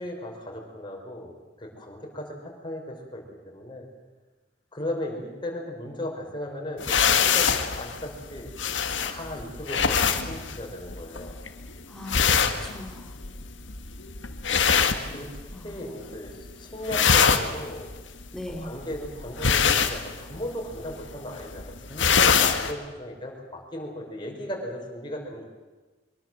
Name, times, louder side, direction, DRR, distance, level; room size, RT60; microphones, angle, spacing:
voice 1, 0.0-3.9 4.7-8.5 9.0-11.4 14.5-14.6 15.0-15.3 15.5-17.9 18.5-25.4, left 1 dB, 25° left, 0 dB, 5.7 m, -37 dB
sound 1, 6.8-15.8 16.1-16.5 16.7-22.7, left 6 dB, 80° left, 1.7 m, -24 dB
voice 2, 11.9-13.1 15.5-15.9 18.3-18.7, left 1 dB, 5° left, 3 dB, 2.8 m, -40 dB
24.0 x 22.5 x 7.8 m, 1.2 s
head